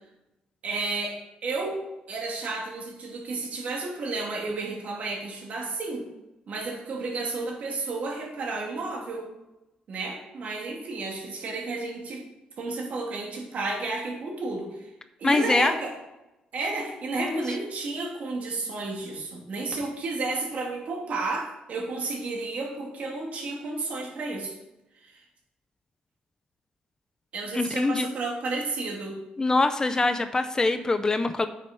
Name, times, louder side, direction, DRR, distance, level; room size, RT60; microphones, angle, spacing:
voice 1, 0.6-1.2 1.4-6.1 6.5-9.3 9.9-12.2 12.6-14.9 15.2-15.9 16.5-24.5 25.0-25.2 27.3-29.1, right 3 dB, 55° right, -1 dB, 3.1 m, -32 dB
voice 2, 15.2-15.7 17.2-17.4 27.5-28.1 29.4-31.5, left 3 dB, 25° left, 10 dB, 0.6 m, -24 dB
9.0 x 6.4 x 5.5 m, 0.94 s
cardioid pair, 105°, 3 cm